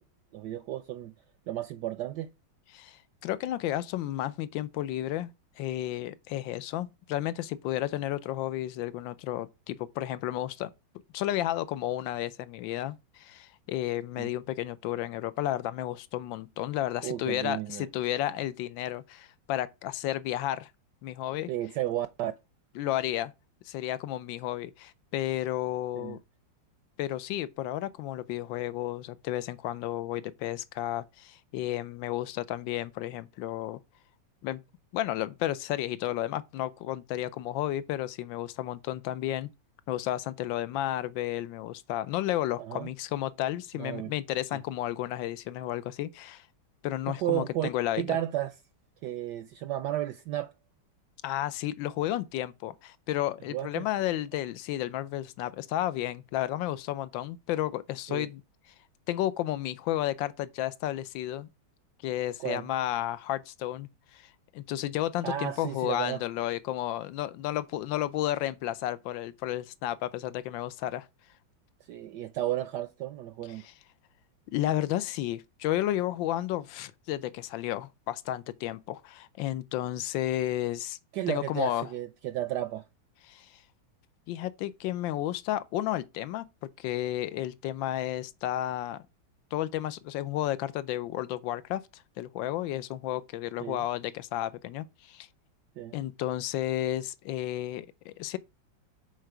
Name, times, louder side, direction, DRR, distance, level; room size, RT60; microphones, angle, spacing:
voice 1, 0.3-1.1 1.5-2.3 14.2-14.3 17.0-17.9 21.5-22.3 25.9-26.2 42.6-42.9 43.8-44.1 47.1-47.7 48.0-48.5 49.0-50.5 53.5-53.8 58.1-58.3 62.4-62.7 65.2-66.2 71.9-73.7 81.1-82.8 93.6-93.8 95.8-96.0, right 13 dB, 70° right, 1.1 m, -33 dB
voice 2, 2.7-10.7 11.1-20.7 21.0-21.5 22.7-23.3 23.6-26.2 27.0-33.8 34.4-34.6 34.9-39.5 39.9-46.5 46.8-48.2 51.2-58.4 59.1-61.5 62.0-71.1 73.5-73.7 74.5-81.0 81.3-81.9 83.3-83.6 84.3-89.0 89.5-95.3 95.9-98.4, left 13 dB, 75° left, 1.3 m, -32 dB
6.6 x 4.6 x 6.0 m
omnidirectional pair, 2.1 m